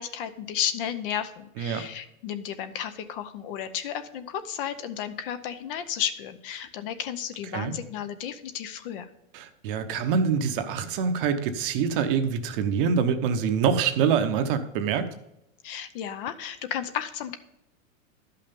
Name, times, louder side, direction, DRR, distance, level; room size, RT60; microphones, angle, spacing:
voice 1, 0.0-9.1 15.6-17.4, left 9 dB, 45° left, 11 dB, 0.7 m, -33 dB
voice 2, 9.3-15.1, right 6 dB, 40° right, 8 dB, 0.9 m, -25 dB
11.5 x 5.7 x 5.3 m, 0.86 s
supercardioid pair, 150°, 40 cm